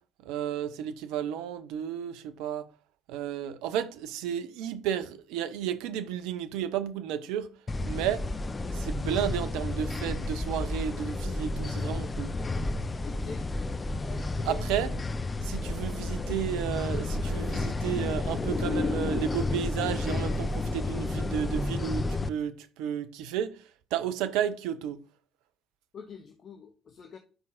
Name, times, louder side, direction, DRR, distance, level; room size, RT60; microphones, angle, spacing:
voice 1, 0.2-2.7 3.1-7.5 7.8-8.3 8.7-12.3 14.5-14.9 15.4-23.6 23.9-25.0, right 9 dB, 65° right, 0.6 m, -32 dB
sound 1, 7.7-22.3, left 2 dB, 25° left, 0.4 m, -31 dB
voice 2, 13.0-13.5 14.0-14.7 25.9-27.2, left 5 dB, 40° left, 0.8 m, -44 dB
11.5 x 5.3 x 2.5 m
figure-of-eight pair, 50°, 0 cm